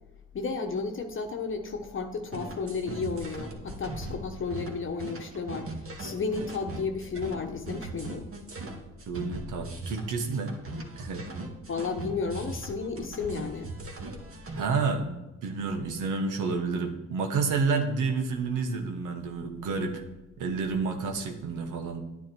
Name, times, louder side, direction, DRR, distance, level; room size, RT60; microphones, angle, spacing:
voice 1, 0.3-8.3 11.7-13.7, left 4 dB, 40° left, 4 dB, 1.0 m, -33 dB
sound 1, 2.3-14.7, right 2 dB, 45° right, 1.9 m, -39 dB
voice 2, 9.1-10.5 11.0-11.2 14.5-20.0 20.4-22.0, right 4 dB, 85° right, 5 dB, 1.4 m, -30 dB
9.9 x 9.5 x 4.5 m, 1.0 s
cardioid pair, 90°, 30 cm